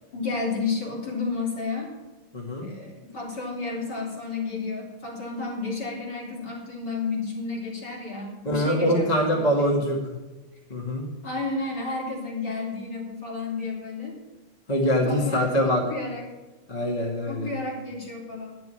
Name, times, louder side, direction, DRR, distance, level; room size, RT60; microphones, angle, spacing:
voice 1, 0.1-1.9 2.6-9.8 11.2-14.1 14.9-16.2 17.3-18.5, left 4 dB, 50° left, -4 dB, 4.6 m, -32 dB
voice 2, 2.3-2.7 8.5-10.2 10.7-11.1 14.7-15.8 16.7-17.5, equal, 20° left, -1 dB, 1.8 m, -24 dB
11.0 x 7.7 x 10.0 m, 1.2 s
omnidirectional pair, 2.3 m